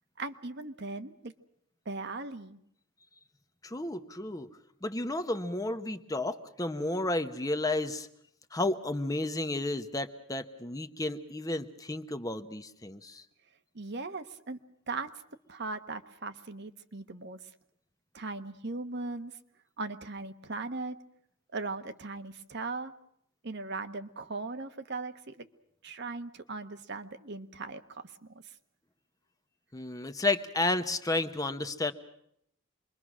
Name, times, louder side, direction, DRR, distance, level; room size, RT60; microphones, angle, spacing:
voice 1, 0.2-1.3 1.8-2.6 13.7-14.6 14.9-15.1 15.5-17.4 18.1-19.3 19.8-21.0 21.5-22.9 23.4-25.5 25.8-28.1 28.4-28.5, right 3 dB, 55° right, 9 dB, 1.1 m, -38 dB
voice 2, 3.6-4.5 4.8-8.1 8.5-13.2 29.7-31.9, left 2 dB, 15° left, 9 dB, 0.9 m, -32 dB
27.0 x 22.5 x 6.2 m, 0.74 s
head